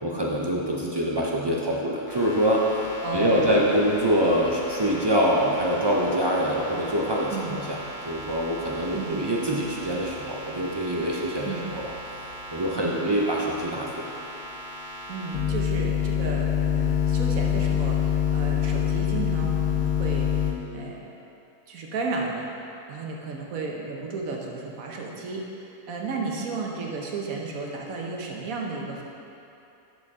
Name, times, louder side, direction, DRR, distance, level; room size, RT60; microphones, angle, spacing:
voice 1, 0.0-2.6 3.1-7.8 8.0-11.9 12.5-14.1, equal, 35° right, -3 dB, 0.4 m, -25 dB
sound 1, 2.1-20.5, left 7 dB, 70° left, 1.4 m, -29 dB
voice 2, 3.0-3.8 7.3-7.6 8.9-9.2 11.4-11.7 12.7-13.1 14.8-21.1 21.7-22.5 22.9-29.0, right 3 dB, 85° right, -1 dB, 1.4 m, -33 dB
10.5 x 5.0 x 3.7 m, 2.8 s
omnidirectional pair, 1.4 m